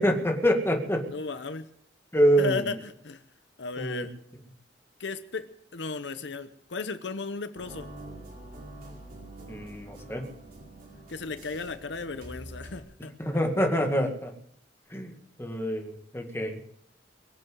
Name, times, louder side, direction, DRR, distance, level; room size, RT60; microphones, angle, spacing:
voice 1, 0.0-1.1 2.1-2.7 3.8-4.0 9.5-10.2 13.2-14.3 14.9-15.1 15.4-16.6, equal, 15° left, 3 dB, 2.0 m, -26 dB
voice 2, 1.1-1.7 2.4-3.2 3.6-4.1 5.0-7.9 11.1-13.1, left 4 dB, 75° left, 10 dB, 0.9 m, -35 dB
sound 1, 7.5-12.8, right 1 dB, 55° right, 4.9 m, -45 dB
23.0 x 7.7 x 7.9 m, 0.71 s
head